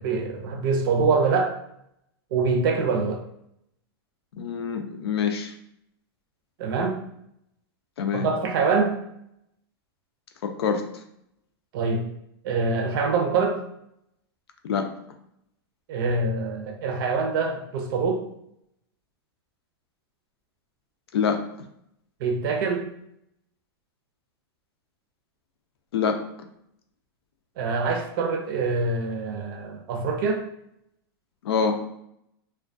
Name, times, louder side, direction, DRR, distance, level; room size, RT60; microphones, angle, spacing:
voice 1, 0.0-1.6 2.3-3.2 6.6-7.0 8.1-9.0 11.7-12.1 12.4-13.6 15.9-18.3 22.2-22.9 27.6-30.4, right 4 dB, 60° right, 3 dB, 0.5 m, -25 dB
voice 2, 4.4-5.5 8.0-8.3 10.4-10.8 14.6-14.9 21.1-21.4 25.9-26.2 31.4-31.9, left 6 dB, 85° left, 6 dB, 0.4 m, -25 dB
2.2 x 2.2 x 2.5 m, 0.74 s
hypercardioid pair, 130°, 13 cm